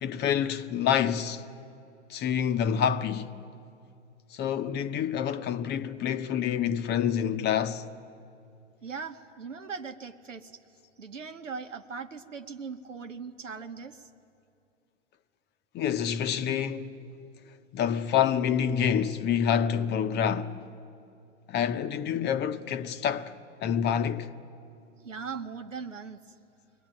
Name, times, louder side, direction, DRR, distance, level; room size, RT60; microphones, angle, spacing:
voice 1, 0.0-1.4 2.1-3.3 4.3-7.9 15.7-17.0 17.7-20.6 21.5-23.3 23.6-24.3, left 8 dB, 30° left, 0.8 m, -27 dB
voice 2, 8.8-10.6 11.0-14.1 25.0-26.2, right 5 dB, 90° right, 1.2 m, -39 dB
22.5 x 19.0 x 9.0 m
hypercardioid pair, 100°, 37 cm